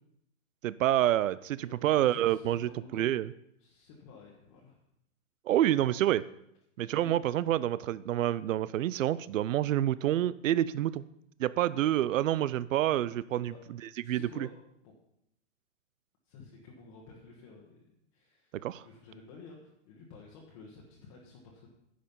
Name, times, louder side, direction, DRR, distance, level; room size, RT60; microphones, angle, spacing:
voice 1, 0.6-3.3 5.5-6.2 6.8-11.0 11.4-13.5 14.1-14.5 18.5-18.8, right 12 dB, 80° right, 17 dB, 0.5 m, -28 dB
voice 2, 1.6-3.1 3.6-4.8 6.9-7.1 13.4-13.6 14.0-14.5 14.8-14.9 16.2-17.8 18.1-21.7, left 4 dB, 25° left, -3 dB, 1.3 m, -52 dB
10.0 x 7.5 x 5.4 m, 0.79 s
hypercardioid pair, 170°, 38 cm